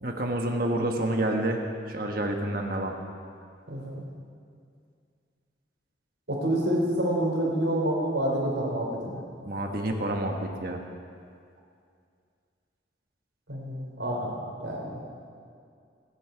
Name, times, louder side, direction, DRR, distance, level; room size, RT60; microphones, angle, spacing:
voice 1, 0.0-2.9 9.5-10.8, right 1 dB, 50° right, 2 dB, 1.4 m, -28 dB
voice 2, 3.7-4.0 6.3-9.2 13.5-14.3 14.6-15.0, right 1 dB, 75° right, -2 dB, 4.5 m, -28 dB
27.5 x 10.5 x 4.7 m, 2.3 s
head